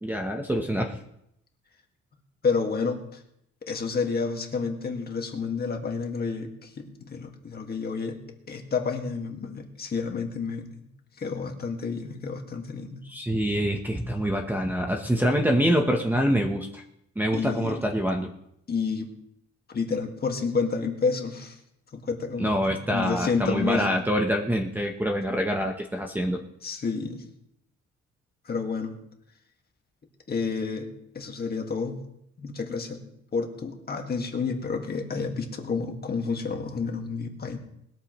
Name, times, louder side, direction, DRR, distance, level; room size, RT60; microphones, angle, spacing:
voice 1, 0.0-1.0 13.1-16.8 17.2-18.3 22.4-26.4, equal, 5° right, 2 dB, 0.9 m, -25 dB
voice 2, 2.4-3.2 3.7-8.2 8.5-10.7 11.2-13.0 17.3-17.8 18.7-19.1 19.7-21.6 21.9-23.9 26.6-27.2 28.5-28.9 30.3-30.9 31.1-32.0 32.4-33.0 33.3-37.6, left 5 dB, 35° left, 3 dB, 1.8 m, -30 dB
20.5 x 13.5 x 3.1 m, 0.78 s
cardioid pair, 160°, 29 cm